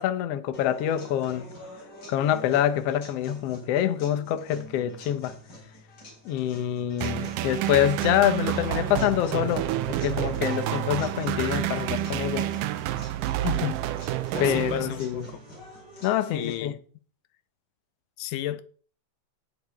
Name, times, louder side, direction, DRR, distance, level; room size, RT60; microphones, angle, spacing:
voice 1, 0.0-1.5 2.1-5.3 6.2-12.5 14.4-15.2 16.0-16.7, left 11 dB, 70° left, 1.6 m, -26 dB
sound 1, 0.5-16.5, left 1 dB, 35° left, 4.9 m, -46 dB
sound 2, 7.0-15.3, right 12 dB, 90° right, 2.3 m, -29 dB
voice 2, 13.4-13.9 14.3-15.4 16.3-16.8 18.2-18.6, left 14 dB, 85° left, 2.2 m, -32 dB
17.5 x 6.7 x 3.5 m
omnidirectional pair, 3.7 m